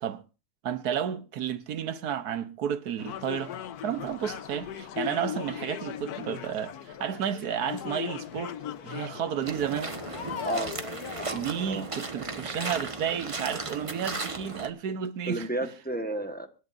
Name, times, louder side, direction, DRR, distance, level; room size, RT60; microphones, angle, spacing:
voice 1, 0.6-3.5 3.8-8.5 8.8-9.9 11.3-15.5, right 8 dB, 80° right, 1.5 m, -32 dB
sound 1, 3.0-11.4, left 9 dB, 80° left, 1.4 m, -38 dB
sound 2, 9.4-14.7, right 3 dB, 20° right, 1.2 m, -36 dB
voice 2, 10.4-10.8 11.2-11.9 15.3-16.5, right 2 dB, 5° left, 1.2 m, -32 dB
24.5 x 12.0 x 2.6 m
omnidirectional pair, 1.6 m